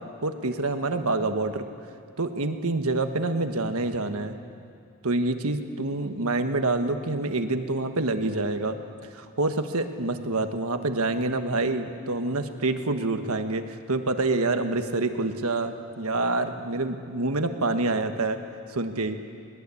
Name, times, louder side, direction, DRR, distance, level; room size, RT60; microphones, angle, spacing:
voice 1, 0.2-1.6 2.2-4.4 5.0-8.8 9.1-18.4 18.7-19.2, right 2 dB, 85° right, 7 dB, 1.5 m, -27 dB
21.0 x 21.0 x 8.5 m, 2.4 s
head